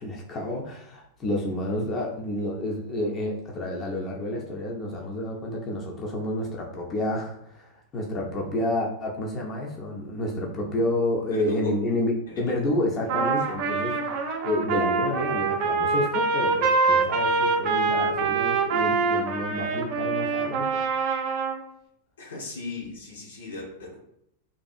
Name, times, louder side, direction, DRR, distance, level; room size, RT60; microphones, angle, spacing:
voice 1, 0.0-14.1 14.4-20.8, left 1 dB, 30° left, -1 dB, 0.5 m, -29 dB
voice 2, 11.3-11.8 12.3-12.6 22.2-24.0, left 3 dB, 70° left, -1 dB, 0.7 m, -37 dB
Trumpet, 13.1-21.6, right 4 dB, 50° right, 0.4 m, -25 dB
2.6 x 2.4 x 2.3 m, 0.75 s
figure-of-eight pair, 90°, 0 cm